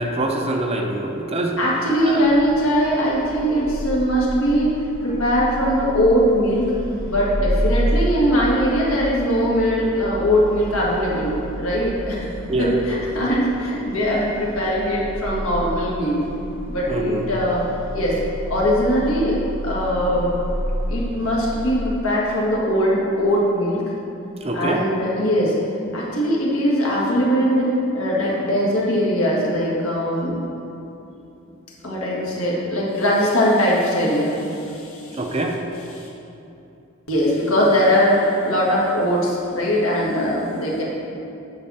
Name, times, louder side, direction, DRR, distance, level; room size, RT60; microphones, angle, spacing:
voice 1, 0.0-1.6 2.0-2.2 12.5-12.8 16.9-17.3 24.4-24.8 35.1-35.6, right 2 dB, 25° right, 2 dB, 0.6 m, -24 dB
voice 2, 1.6-4.8 5.0-6.7 7.1-12.3 12.6-16.2 16.7-17.7 17.9-18.2 18.5-20.4 20.9-23.8 24.5-25.6 25.9-30.4 31.8-35.2 36.0-36.1 37.1-40.8, equal, 75° left, -4 dB, 1.8 m, -21 dB
sound 1, 2.1-21.7, equal, 60° right, 0.9 m, -30 dB
8.8 x 6.1 x 4.2 m, 2.8 s
head